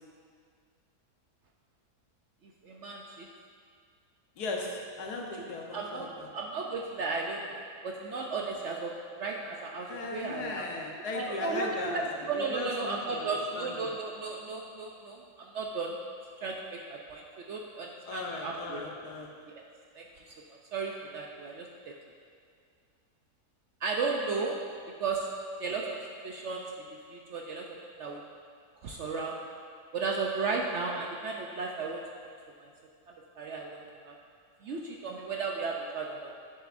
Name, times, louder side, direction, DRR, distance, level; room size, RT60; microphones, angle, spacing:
voice 1, 2.4-3.3 5.7-6.1 6.3-10.6 11.1-16.0 16.4-18.8 19.5-19.6 19.9-20.3 20.7-21.9 23.8-24.6 25.0-25.3 25.6-28.2 28.8-29.4 29.9-32.0 32.6-32.7 33.4-33.8 34.0-34.1 34.6-36.3, right 4 dB, 65° right, 0 dB, 0.7 m, -35 dB
voice 2, 4.4-6.3 9.9-13.3 13.5-13.7 18.1-19.3, left 2 dB, 80° left, 0 dB, 1.5 m, -37 dB
10.5 x 6.8 x 2.5 m, 2.1 s
omnidirectional pair, 1.7 m